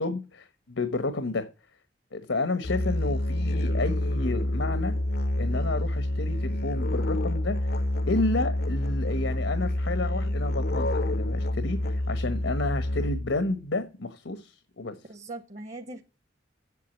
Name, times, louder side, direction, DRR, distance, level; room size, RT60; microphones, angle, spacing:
voice 1, 0.0-1.5 2.1-4.9 5.4-7.8 8.1-14.9, left 2 dB, 85° left, 1.1 m, -31 dB
Musical instrument, 2.6-13.4, left 1 dB, 55° left, 0.6 m, -28 dB
voice 2, 15.0-16.0, right 2 dB, 35° right, 1.0 m, -41 dB
8.4 x 7.6 x 7.9 m
head